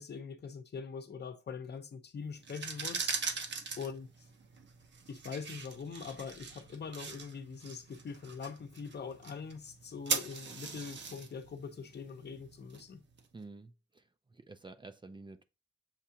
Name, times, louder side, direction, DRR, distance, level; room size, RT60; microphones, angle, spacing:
voice 1, 0.0-3.2 3.8-4.1 5.1-13.0, left 5 dB, 55° left, 0.8 m, -43 dB
sound 1, 2.4-13.2, right 5 dB, 60° right, 0.8 m, -41 dB
voice 2, 13.3-15.4, right 3 dB, 25° right, 0.4 m, -51 dB
7.2 x 2.4 x 2.8 m
wide cardioid pair, 115°, 21 cm